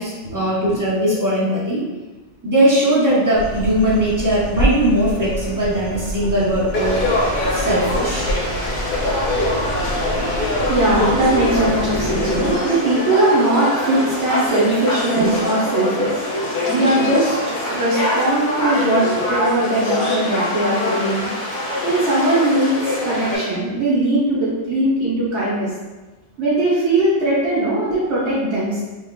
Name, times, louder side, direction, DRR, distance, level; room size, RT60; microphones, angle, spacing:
voice 1, 0.0-1.8 2.4-7.0 7.5-8.3, right 1 dB, 20° right, -7 dB, 0.8 m, -19 dB
sound 1, 3.3-12.6, equal, 75° left, 1.0 m, -27 dB
Conversation / Crowd, 6.7-23.4, left 1 dB, 45° left, 0.8 m, -23 dB
voice 2, 9.8-17.4 17.7-21.3 21.8-25.7 26.4-28.8, right 1 dB, 65° right, -8 dB, 1.2 m, -20 dB
3.6 x 3.5 x 2.2 m, 1.2 s
omnidirectional pair, 1.2 m